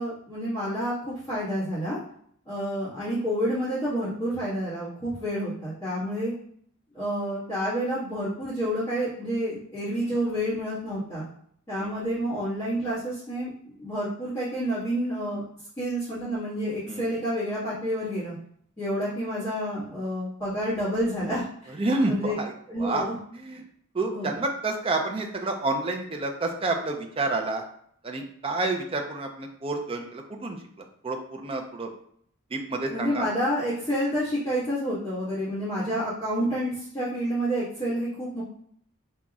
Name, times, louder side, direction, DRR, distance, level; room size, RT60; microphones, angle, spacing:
voice 1, 0.0-2.0 2.5-6.3 6.9-11.3 11.7-13.5 13.8-15.4 15.8-18.3 18.8-21.7 22.1-22.4 22.7-23.1 24.1-24.3 32.9-38.4, equal, 20° left, -15 dB, 1.7 m, -29 dB
voice 2, 16.9-17.2 21.7-22.5 22.8-23.0 23.3-23.6 23.9-27.6 28.0-31.9 32.5-33.3, right 2 dB, 25° right, 3 dB, 0.5 m, -29 dB
5.2 x 2.9 x 2.4 m, 0.65 s
head